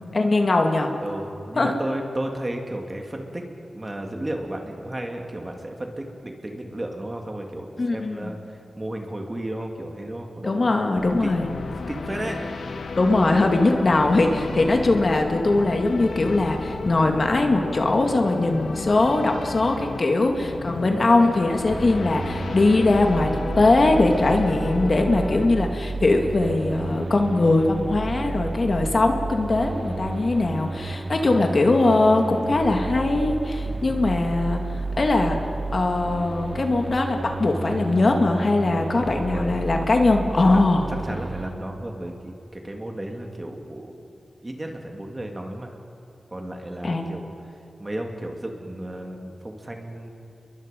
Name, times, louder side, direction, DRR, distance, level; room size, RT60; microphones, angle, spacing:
voice 1, 0.0-0.9 1.6-1.7 7.8-8.3 10.4-11.5 13.0-35.4 35.7-40.9 46.8-47.1, left 2 dB, 50° left, 3 dB, 2.2 m, -21 dB
voice 2, 1.0-12.5 20.7-21.0 31.0-31.4 33.6-34.0 39.0-39.5 40.9-45.8 46.3-50.1, right 1 dB, 25° right, 2 dB, 2.7 m, -34 dB
sound 1, 10.9-25.5, left 4 dB, 85° left, 1.2 m, -33 dB
sound 2, 21.7-41.5, right 3 dB, 45° right, 2.5 m, -32 dB
29.5 x 22.5 x 5.4 m, 2.8 s
wide cardioid pair, 100°, 0 cm